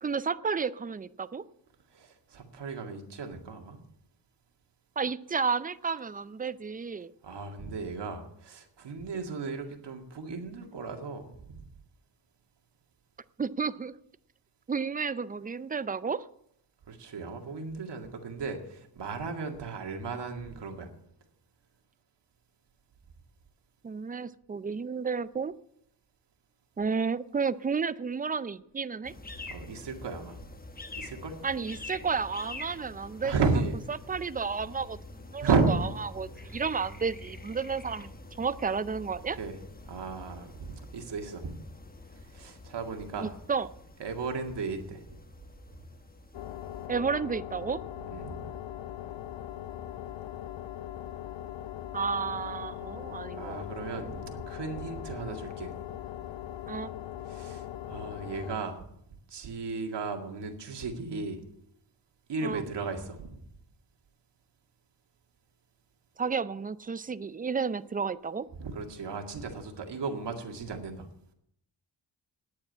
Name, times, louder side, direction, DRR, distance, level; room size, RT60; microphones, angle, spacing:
voice 1, 0.0-1.4 5.0-7.1 13.4-14.0 14.7-16.3 23.8-25.5 26.8-29.1 31.4-33.3 33.9-35.8 36.2-38.1 38.4-39.4 43.2-43.7 46.9-47.8 51.9-53.6 56.7-56.9 62.4-62.6 66.2-68.5, right 5 dB, 20° right, 16 dB, 0.4 m, -32 dB
voice 2, 1.9-3.8 7.2-11.6 16.9-20.9 29.5-30.4 31.0-31.4 33.2-33.8 35.4-35.7 36.4-36.6 39.4-39.6 39.8-41.6 42.3-43.3 44.0-45.0 48.1-48.4 53.3-55.7 57.3-58.9 59.3-61.4 62.3-63.3 68.6-71.1, right 4 dB, 65° right, 4 dB, 2.2 m, -34 dB
sound 1, 29.0-46.9, left 2 dB, 20° left, 1.1 m, -46 dB
sound 2, 46.3-58.6, left 11 dB, 75° left, 0.7 m, -40 dB
9.9 x 8.7 x 8.5 m, 0.75 s
cardioid pair, 95°, 44 cm